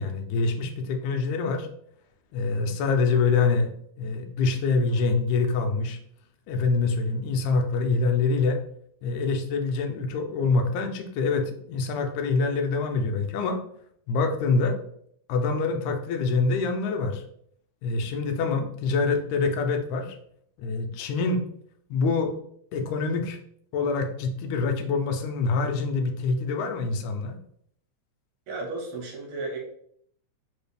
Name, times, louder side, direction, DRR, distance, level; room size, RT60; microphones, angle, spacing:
voice 1, 0.0-1.7 2.3-3.7 4.0-6.0 6.5-8.6 9.0-13.6 14.1-14.8 15.3-17.2 17.8-20.2 20.6-21.4 21.9-22.3 22.7-23.4 23.7-27.4, left 4 dB, 80° left, 5 dB, 1.9 m, -25 dB
voice 2, 28.5-29.6, right 3 dB, 75° right, 0 dB, 1.9 m, -34 dB
4.7 x 2.4 x 3.3 m, 0.66 s
omnidirectional pair, 3.4 m